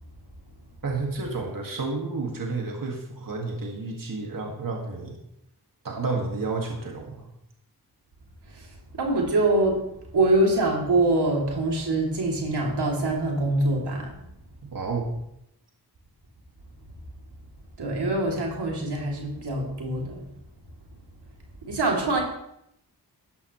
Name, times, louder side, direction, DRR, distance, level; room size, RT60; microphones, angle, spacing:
voice 1, 0.8-5.2 5.8-7.3 14.7-15.1, right 3 dB, 55° right, 0 dB, 2.0 m, -31 dB
voice 2, 8.9-9.8 10.1-14.1 17.8-20.2 21.7-22.2, right 2 dB, 85° right, -1 dB, 2.8 m, -24 dB
12.5 x 11.0 x 3.1 m, 0.77 s
cardioid pair, 55°, 39 cm